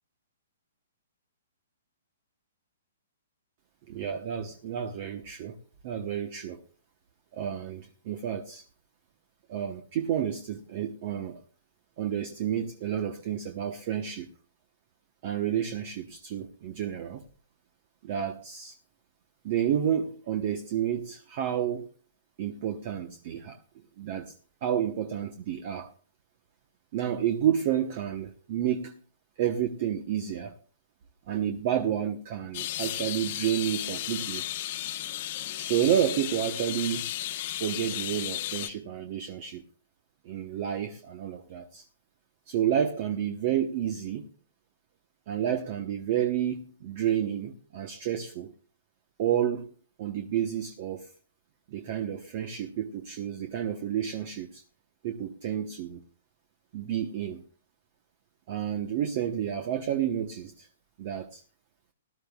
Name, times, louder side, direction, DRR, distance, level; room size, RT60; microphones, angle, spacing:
voice 1, 3.9-5.6 5.8-6.6 7.3-8.6 9.5-11.4 12.0-14.3 15.2-17.2 18.0-18.8 19.4-21.9 22.4-23.6 24.0-24.3 24.6-25.9 26.9-28.9 29.4-30.6 31.3-34.4 35.6-37.1 37.6-39.6 40.2-41.8 42.5-44.3 45.3-48.5 49.2-49.7 50.0-51.1 51.7-54.6 55.0-56.0 56.7-57.4 58.5-60.7 61.0-61.4, right 10 dB, 45° right, 1.1 m, -30 dB
sound 1, 32.5-38.7, left 13 dB, 50° left, 1.0 m, -34 dB
18.5 x 12.0 x 2.4 m
hypercardioid pair, 150°, 0 cm